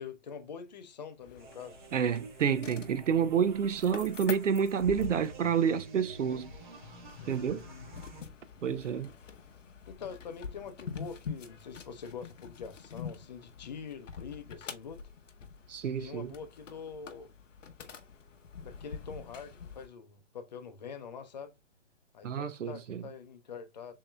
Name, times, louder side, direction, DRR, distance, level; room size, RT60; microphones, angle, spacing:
voice 1, 0.0-1.8 7.2-7.9 8.6-8.9 9.9-15.0 16.0-17.3 18.6-21.6 22.1-23.9, left 6 dB, 35° left, 0.6 m, -45 dB
sound 1, 1.2-19.9, left 6 dB, 85° left, 0.9 m, -46 dB
sound 2, 1.4-8.2, right 4 dB, 40° right, 1.3 m, -50 dB
voice 2, 1.9-6.5 7.3-7.6 8.6-9.1 15.7-16.3 22.2-23.0, right 7 dB, 80° right, 0.6 m, -29 dB
6.9 x 2.8 x 2.2 m
hypercardioid pair, 160°, 36 cm